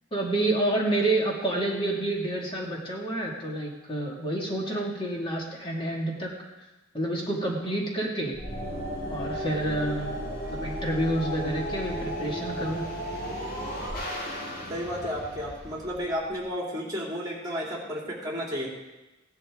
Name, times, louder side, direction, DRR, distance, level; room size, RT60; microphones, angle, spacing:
voice 1, 0.1-6.3 6.9-8.3 9.1-12.9, right 1 dB, 30° left, -3 dB, 2.3 m, -29 dB
sound 1, 8.3-16.4, equal, 55° left, 4.5 m, -34 dB
voice 2, 14.7-18.7, equal, 20° right, -3 dB, 3.2 m, -32 dB
16.5 x 11.5 x 3.8 m, 1.1 s
head